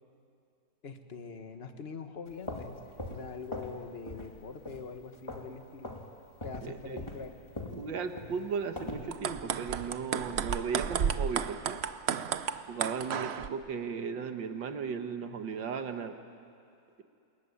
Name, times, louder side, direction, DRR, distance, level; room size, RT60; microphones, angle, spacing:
voice 1, 0.8-2.8 3.1-5.9 6.4-7.3, left 5 dB, 35° left, 7 dB, 1.6 m, -43 dB
sound 1, 2.3-3.8 4.1-4.4 4.6-5.5 5.8-6.1 6.4-9.1, left 1 dB, 15° left, 2.5 m, -41 dB
voice 2, 6.6-7.0 7.8-11.8 12.7-16.2, right 6 dB, 80° right, 7 dB, 2.1 m, -36 dB
sound 2, 9.0-13.5, right 7 dB, 55° right, 0.7 m, -33 dB
27.5 x 21.0 x 9.9 m, 2.5 s
omnidirectional pair, 2.0 m